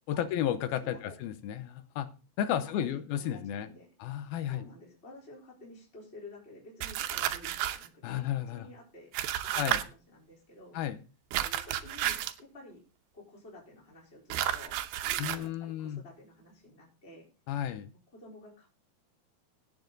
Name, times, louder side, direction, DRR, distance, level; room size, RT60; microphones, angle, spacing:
voice 1, 0.1-2.1 2.4-3.7 4.0-4.6 8.0-8.7 9.6-9.8 10.7-11.0 15.2-16.0 17.5-17.9, left 10 dB, 75° left, 2.6 m, -33 dB
voice 2, 0.8-1.2 2.4-3.9 4.5-9.1 9.4-10.8 11.4-12.8 13.1-17.3 18.1-18.7, left 1 dB, 15° left, 4.0 m, -51 dB
sound 1, 6.8-7.9 9.1-9.8 11.3-12.4 14.3-15.4, right 12 dB, 80° right, 2.7 m, -31 dB
17.5 x 7.3 x 3.9 m
omnidirectional pair, 4.6 m